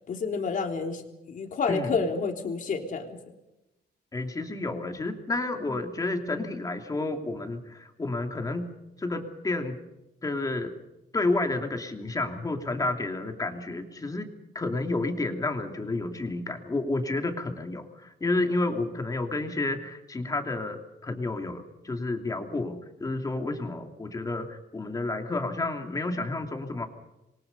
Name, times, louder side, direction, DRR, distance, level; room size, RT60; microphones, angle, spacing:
voice 1, 0.1-1.0 1.3-3.2 5.7-5.8, left 4 dB, 45° left, 3 dB, 3.6 m, -29 dB
voice 2, 4.1-8.7 9.0-9.8 10.2-10.7 11.1-26.9, left 2 dB, 20° left, 4 dB, 2.9 m, -30 dB
27.5 x 23.0 x 5.5 m, 0.94 s
cardioid pair, 160°, 18 cm